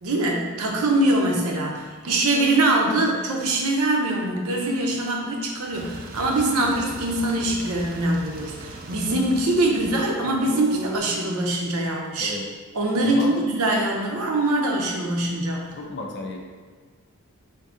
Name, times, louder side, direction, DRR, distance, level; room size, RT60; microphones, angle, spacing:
voice 1, 0.0-12.4 12.7-15.8, right 1 dB, 75° right, 0 dB, 0.7 m, -23 dB
sound 1, 5.7-11.0, right 2 dB, 40° right, 0.4 m, -38 dB
voice 2, 13.0-13.4 15.8-16.4, left 2 dB, 50° left, 1 dB, 0.5 m, -33 dB
3.6 x 2.7 x 3.6 m, 1.4 s
head